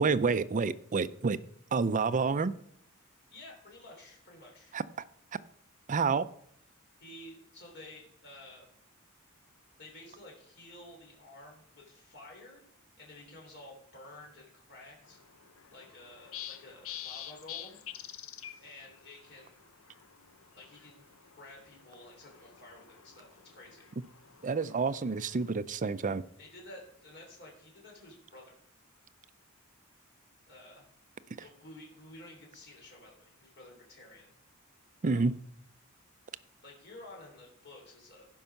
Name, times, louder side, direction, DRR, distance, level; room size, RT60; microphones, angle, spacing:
voice 1, 0.0-1.4 1.7-2.5 4.7-4.8 5.9-6.3 24.4-26.2 35.0-35.3, right 4 dB, 40° right, 15 dB, 0.5 m, -28 dB
voice 2, 3.3-4.8 7.0-8.7 9.8-12.6 13.0-15.2 15.7-17.8 18.6-19.6 20.6-21.0 21.3-23.9 26.4-28.6 30.5-30.8 31.3-34.3 35.0-35.2 36.6-38.3, left 1 dB, 55° left, -1 dB, 3.5 m, -52 dB
sound 1, 15.0-25.5, left 11 dB, 70° left, 0.7 m, -49 dB
16.5 x 5.5 x 5.8 m, 0.68 s
head